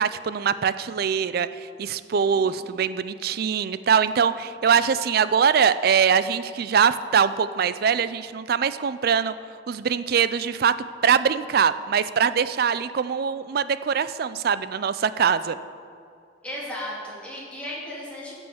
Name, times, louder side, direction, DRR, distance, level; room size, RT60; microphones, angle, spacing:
voice 1, 0.0-9.3 9.7-10.8 11.0-15.6, right 7 dB, 55° right, 14 dB, 0.4 m, -22 dB
voice 2, 2.2-2.7 16.4-18.4, left 1 dB, 5° left, -7 dB, 2.9 m, -36 dB
15.0 x 5.5 x 7.1 m, 2.4 s
head